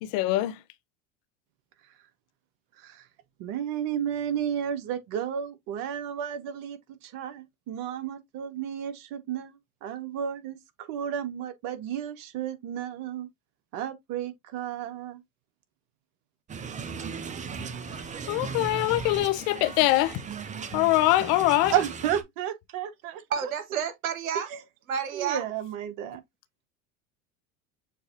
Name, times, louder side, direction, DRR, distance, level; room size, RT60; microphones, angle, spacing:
voice 1, 0.0-0.6 17.9-20.2 20.7-21.8, left 17 dB, 55° left, 0.7 m, -24 dB
voice 2, 2.8-3.1 3.4-13.3 13.7-15.2 21.7-23.5 24.5-24.6 25.1-26.2, right 9 dB, 55° right, 1.0 m, -32 dB
sound 1, 16.5-22.2, right 5 dB, 20° right, 0.6 m, -37 dB
voice 3, 23.3-24.5 24.9-25.4, right 7 dB, 85° right, 1.0 m, -30 dB
6.7 x 2.6 x 2.5 m
hypercardioid pair, 85°, 40 cm